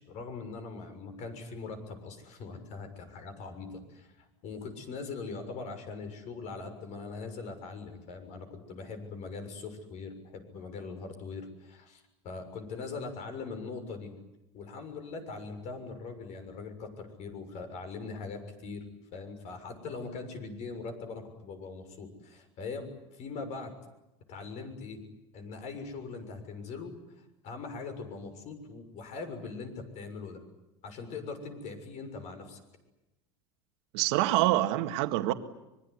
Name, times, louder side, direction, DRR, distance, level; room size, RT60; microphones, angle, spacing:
voice 1, 0.0-14.1 14.5-18.8 19.1-23.7 24.3-25.0 25.3-30.4 30.8-32.6, left 4 dB, 55° left, 8 dB, 6.7 m, -41 dB
voice 2, 33.9-35.3, right 16 dB, 80° right, 7 dB, 2.0 m, -26 dB
25.0 x 22.5 x 9.8 m, 0.95 s
supercardioid pair, 130°, 15 cm